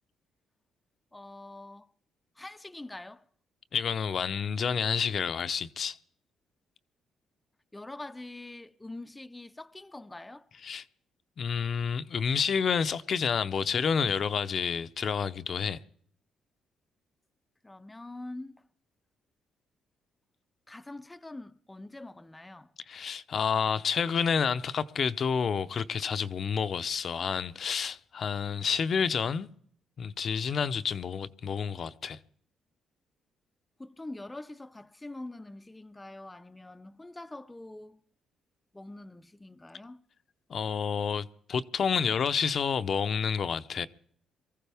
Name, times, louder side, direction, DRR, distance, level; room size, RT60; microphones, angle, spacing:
voice 1, 1.1-1.9 2.4-3.3 7.7-10.5 17.6-18.7 20.7-22.7 33.8-38.0 38.7-40.0, left 2 dB, 15° left, 0.6 m, -44 dB
voice 2, 3.7-6.0 10.6-10.8 11.4-15.8 22.9-29.5 30.0-32.2 40.5-43.9, left 6 dB, 55° left, 0.7 m, -29 dB
23.5 x 15.0 x 3.5 m
cardioid pair, 90°, 0 cm